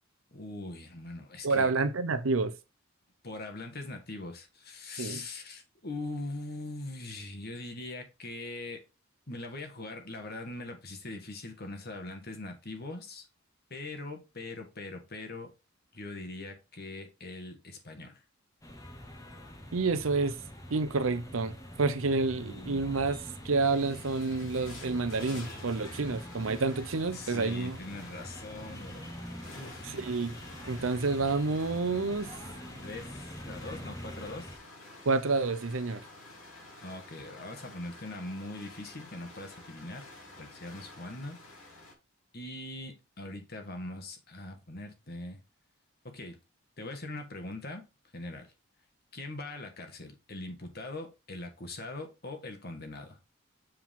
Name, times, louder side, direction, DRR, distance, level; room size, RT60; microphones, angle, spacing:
voice 1, 0.3-1.7 3.2-8.8 9.3-13.3 13.7-15.5 15.9-18.2 22.4-22.8 27.1-29.1 29.5-29.9 32.8-34.6 36.8-40.1 40.4-41.4 42.3-45.4 46.0-46.4 46.8-47.8 48.1-48.5 49.1-53.2, left 2 dB, 45° left, 1.6 m, -41 dB
voice 2, 1.4-2.5 5.0-5.2 19.7-20.4 20.7-23.2 23.4-27.8 29.8-30.3 30.7-32.3 35.1-36.0, right 3 dB, 70° right, 0.7 m, -29 dB
sound 1, 18.6-34.6, equal, 15° left, 1.3 m, -45 dB
sound 2, 23.4-41.9, left 2 dB, 80° left, 3.1 m, -50 dB
7.6 x 4.7 x 3.7 m
head